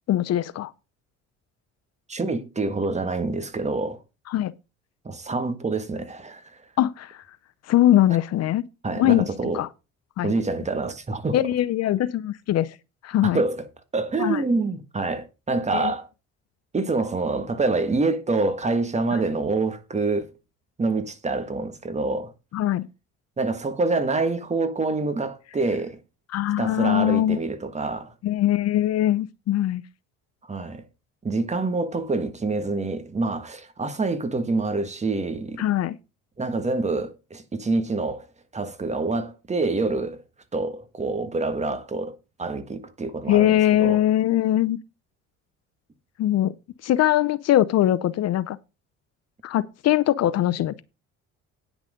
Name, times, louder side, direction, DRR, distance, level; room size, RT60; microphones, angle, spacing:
voice 1, 0.1-0.7 4.3-4.5 6.8-7.2 7.7-8.6 9.0-9.3 9.5-9.7 10.2-10.3 11.3-12.7 13.0-13.4 14.2-14.4 15.7-15.9 22.5-22.8 26.3-27.4 28.2-29.8 35.6-36.0 43.3-44.8 46.2-46.5 46.8-48.6 49.4-50.8, left 12 dB, 55° left, 0.7 m, -21 dB
voice 2, 2.1-4.0 5.0-6.5 8.8-9.6 10.2-11.4 13.2-13.7 13.9-16.1 16.7-20.3 20.8-22.3 23.4-26.0 26.6-28.1 30.5-30.8 31.2-35.6 36.4-38.3 38.5-40.2 40.5-44.0, right 3 dB, 20° right, 1.7 m, -26 dB
9.9 x 6.2 x 5.1 m
cardioid pair, 100°, 30 cm